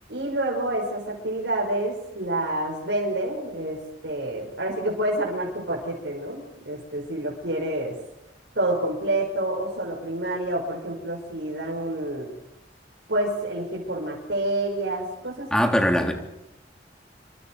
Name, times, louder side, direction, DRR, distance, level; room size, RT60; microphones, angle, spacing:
voice 1, 0.1-3.8 4.0-8.0 8.6-12.3 13.1-15.6, right 1 dB, 75° right, -3 dB, 5.9 m, -28 dB
voice 2, 15.5-16.1, equal, 5° left, 3 dB, 3.3 m, -21 dB
29.0 x 25.5 x 4.9 m, 0.88 s
head